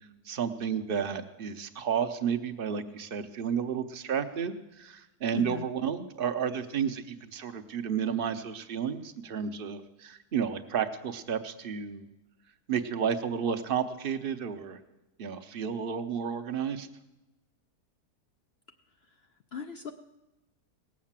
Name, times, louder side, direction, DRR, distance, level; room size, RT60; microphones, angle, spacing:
voice 1, 0.2-12.1 12.7-14.8 15.2-16.9, right 7 dB, 45° right, 8 dB, 0.8 m, -32 dB
voice 2, 5.3-5.7 19.1-19.2 19.5-19.9, left 7 dB, 65° left, 7 dB, 0.6 m, -37 dB
18.0 x 7.4 x 7.4 m, 1.0 s
omnidirectional pair, 1.7 m